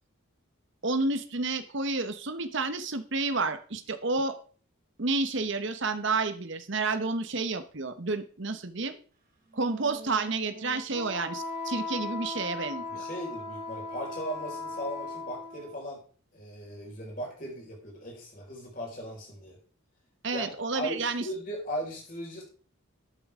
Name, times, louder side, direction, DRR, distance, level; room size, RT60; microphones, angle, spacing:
voice 1, 0.8-4.3 5.0-9.0 9.5-13.0 20.2-21.3, right 3 dB, 55° right, 10 dB, 1.1 m, -30 dB
Wind instrument woodwind instrument, 9.5-15.7, left 3 dB, 40° right, 3.0 m, -38 dB
voice 2, 12.9-16.0 16.3-19.6 20.3-20.4 20.7-22.4, equal, 40° left, -2 dB, 5.4 m, -38 dB
13.0 x 8.5 x 3.7 m, 0.40 s
head